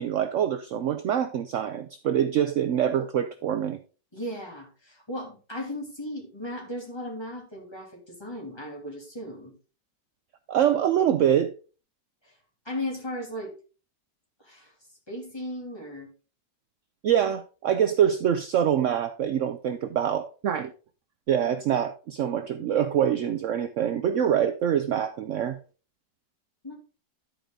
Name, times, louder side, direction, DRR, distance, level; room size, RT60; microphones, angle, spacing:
voice 1, 0.0-3.8 10.5-11.5 17.0-20.7 21.3-25.6, right 9 dB, 70° right, 0.7 m, -25 dB
voice 2, 4.1-9.6 12.2-12.4 12.6-13.5 14.4-14.7 15.1-16.1 26.6-26.8, left 1 dB, 15° left, 2.7 m, -36 dB
11.5 x 5.0 x 3.7 m
omnidirectional pair, 1.9 m